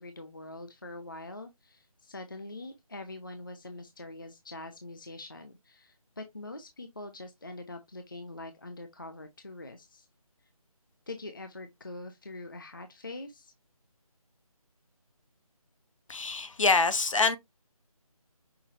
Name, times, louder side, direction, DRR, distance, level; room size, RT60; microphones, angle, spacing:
voice 1, 0.0-10.1 11.1-13.5, left 2 dB, 35° left, 0.4 m, -44 dB
voice 2, 16.1-17.4, left 3 dB, 60° left, 0.8 m, -25 dB
5.7 x 3.0 x 2.5 m
figure-of-eight pair, 170°, 19 cm